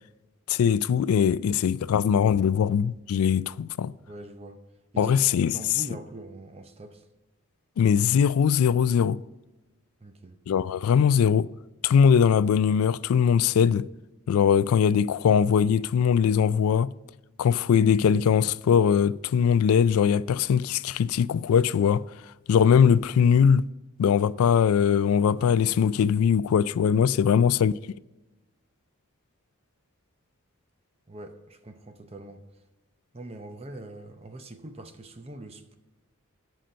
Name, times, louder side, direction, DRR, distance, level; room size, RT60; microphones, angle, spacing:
voice 1, 0.5-3.9 5.0-5.6 7.8-9.2 10.5-11.5 11.8-13.9 14.3-16.9 17.4-22.1 22.5-23.7 24.0-27.7, left 7 dB, 75° left, 0.3 m, -21 dB
voice 2, 4.1-4.6 4.9-7.1 10.0-10.4 27.3-27.4 31.1-32.5 33.1-35.7, right 2 dB, 25° right, 0.6 m, -43 dB
7.6 x 5.8 x 6.7 m
head